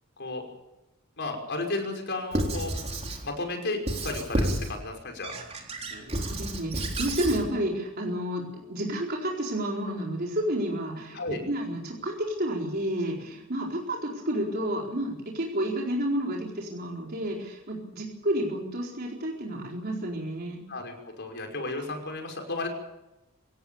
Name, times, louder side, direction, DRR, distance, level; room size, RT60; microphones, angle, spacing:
voice 1, 1.2-2.7 3.2-5.3 11.1-11.4 20.7-22.7, left 2 dB, 50° left, 3 dB, 5.9 m, -33 dB
Squeak / Writing, 2.3-3.2 3.9-4.7 5.2-7.4, right 1 dB, 30° right, 3.9 m, -30 dB
voice 2, 5.9-20.6, right 1 dB, 45° right, -1 dB, 4.4 m, -31 dB
28.0 x 16.0 x 7.3 m, 0.93 s
head